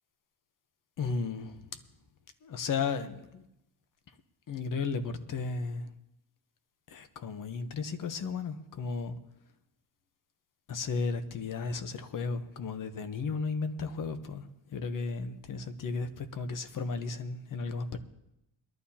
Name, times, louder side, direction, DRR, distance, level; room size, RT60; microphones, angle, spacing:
voice 1, 1.0-1.5 2.4-3.4 4.5-5.9 6.9-9.2 10.7-18.0, left 4 dB, 45° left, 1.0 m, -34 dB
21.0 x 12.0 x 2.8 m
cardioid pair, 150°, 45 cm